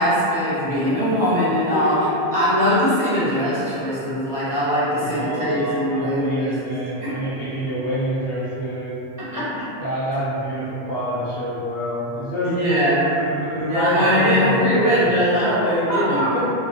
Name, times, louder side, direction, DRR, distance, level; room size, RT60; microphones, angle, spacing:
voice 1, 0.0-2.0 2.3-6.5 7.0-7.1 9.2-9.5 12.4-13.1 13.7-16.4, equal, 50° right, -11 dB, 0.7 m, -21 dB
voice 2, 1.7-2.4 4.8-9.0 9.8-15.2 15.9-16.3, equal, 75° left, -9 dB, 0.9 m, -27 dB
2.3 x 2.1 x 2.5 m, 2.7 s
omnidirectional pair, 1.1 m